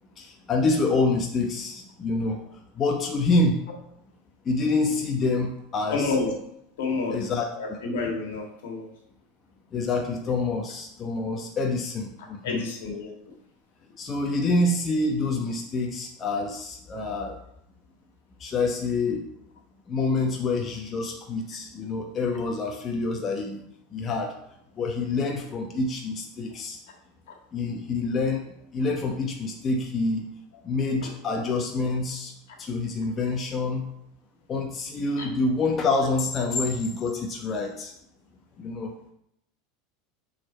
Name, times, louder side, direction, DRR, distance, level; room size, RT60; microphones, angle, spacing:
voice 1, 0.2-2.4 2.8-3.6 4.4-6.1 7.1-7.5 9.7-12.6 14.0-17.4 18.4-19.3 19.9-23.6 23.9-24.3 24.8-26.8 27.5-28.5 28.7-30.2 30.6-32.3 32.6-33.9 34.5-37.9 38.6-38.9, left 3 dB, 35° left, 1 dB, 0.9 m, -27 dB
voice 2, 5.9-6.3 6.8-8.9 12.4-13.1 31.0-31.1 35.2-35.3, left 4 dB, 75° left, 1 dB, 1.8 m, -29 dB
6.4 x 4.1 x 4.3 m, 0.75 s
hypercardioid pair, 90°, 0 cm